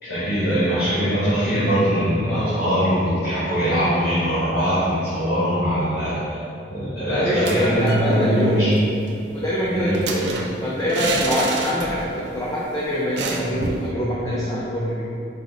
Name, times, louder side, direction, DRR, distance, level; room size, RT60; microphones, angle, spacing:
voice 1, 0.0-6.4 6.7-8.7 9.7-10.1, equal, 60° left, -13 dB, 1.3 m, -22 dB
voice 2, 2.3-2.6 6.1-6.2 7.1-8.6 9.3-15.1, equal, 20° left, -7 dB, 0.4 m, -24 dB
sound 1, 7.3-8.1 8.4-8.5 8.8-12.2 12.5-12.6 13.2-13.9, right 3 dB, 70° right, 0.4 m, -29 dB
4.9 x 2.1 x 3.7 m, 2.7 s
head